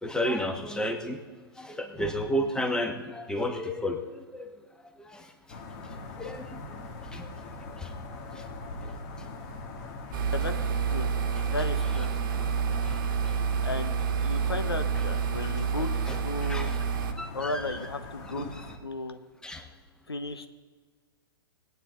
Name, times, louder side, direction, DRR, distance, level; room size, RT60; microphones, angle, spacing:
voice 1, 0.0-1.2 1.6-4.5 5.0-5.3 6.2-6.8 7.1-7.3 7.8-7.9 8.3-8.4 12.8-13.4 16.1-16.2 16.4-16.7 17.2-17.7 18.4-18.5 19.4-19.6, equal, 5° left, 5 dB, 1.4 m, -32 dB
sound 1, 5.5-18.8, left 2 dB, 40° left, 1.7 m, -42 dB
sound 2, 10.1-17.1, right 6 dB, 55° right, 1.3 m, -28 dB
voice 2, 10.3-11.1 11.5-12.1 13.6-16.7 17.3-18.5 18.8-19.2 20.1-20.5, left 3 dB, 85° left, 8 dB, 1.1 m, -35 dB
20.5 x 9.1 x 3.8 m, 1.5 s
figure-of-eight pair, 110°, 13 cm